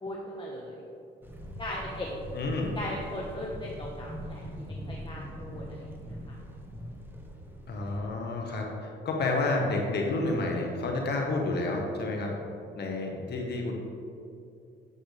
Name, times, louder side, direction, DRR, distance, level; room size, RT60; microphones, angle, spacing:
voice 1, 0.0-0.8 1.6-2.1 2.7-5.8 6.3-6.4, left 1 dB, 25° left, -4 dB, 1.2 m, -38 dB
sound 1, 1.2-8.0, equal, 10° right, 1.2 m, -42 dB
voice 2, 2.3-2.7 7.7-12.3 12.7-13.7, left 2 dB, 55° left, 0 dB, 1.3 m, -30 dB
9.0 x 7.8 x 3.4 m, 2.6 s
cardioid pair, 90°, 20 cm